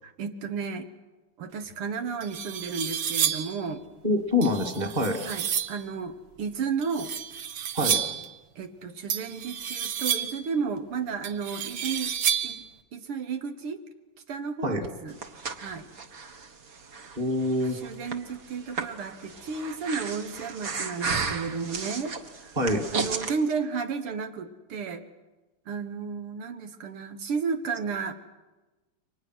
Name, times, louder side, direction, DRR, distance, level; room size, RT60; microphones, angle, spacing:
voice 1, 0.2-0.9 1.4-3.8 5.2-7.1 8.6-12.1 12.4-12.6 12.9-13.8 14.3-15.2 15.6-15.9 17.7-22.1 22.4-22.5 22.9-25.1 25.7-28.1, right 5 dB, 80° right, 7 dB, 2.3 m, -33 dB
sound 1, 1.7-1.8 2.2-3.6 4.4-5.8 6.8-8.3 9.1-10.5 11.2-12.7, right 8 dB, 65° right, 1.9 m, -30 dB
voice 2, 4.0-5.2 7.7-8.0 14.6-14.9 17.2-17.9 22.6-22.9, left 1 dB, 20° right, 4 dB, 2.1 m, -26 dB
Breathing, 14.8-23.3, right 5 dB, 45° right, 1.8 m, -35 dB
29.5 x 24.0 x 6.2 m, 1.1 s
omnidirectional pair, 2.4 m